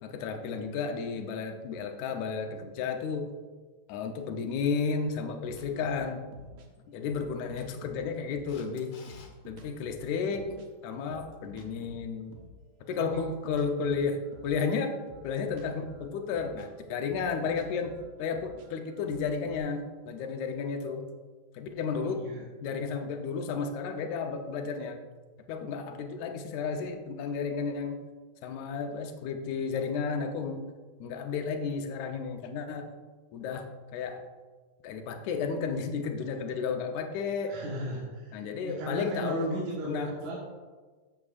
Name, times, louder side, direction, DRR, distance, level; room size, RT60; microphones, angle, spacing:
voice 1, 0.0-3.4 3.9-6.2 6.9-9.0 9.5-10.5 10.8-12.4 12.9-15.0 15.2-21.1 21.5-22.2 22.6-25.0 25.5-28.1 28.4-30.6 31.0-33.0 33.3-34.3 34.8-37.6 38.3-40.1, left 5 dB, 80° left, 4 dB, 2.2 m, -33 dB
sound 1, 5.4-8.7 9.0-12.6 13.1-19.6, right 1 dB, 65° right, 2.0 m, -51 dB
Camera, 8.5-9.3 16.0-16.1, left 4 dB, 60° left, 1.1 m, -53 dB
voice 2, 21.9-22.4 37.5-40.4, right 1 dB, 85° right, -5 dB, 2.9 m, -36 dB
14.5 x 7.3 x 2.5 m, 1.4 s
omnidirectional pair, 3.4 m